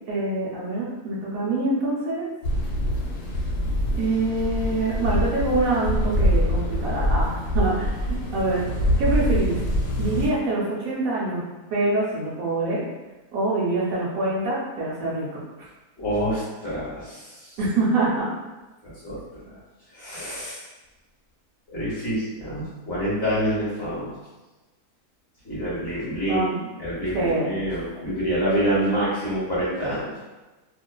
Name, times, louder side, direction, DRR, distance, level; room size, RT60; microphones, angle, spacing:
voice 1, 0.1-2.3 4.0-8.6 9.0-9.6 10.0-11.4 11.7-12.8 13.3-15.4 17.6-18.3 26.3-26.7 27.1-27.5, right 2 dB, 70° right, -6 dB, 0.9 m, -25 dB
sound 1, 2.4-10.3, equal, 80° left, 1.1 m, -24 dB
voice 2, 16.0-17.5 18.8-19.6 19.9-20.6 21.7-24.1 25.4-26.4 26.8-30.1, equal, 50° left, -9 dB, 0.9 m, -27 dB
2.4 x 2.4 x 2.2 m, 1.2 s
omnidirectional pair, 1.7 m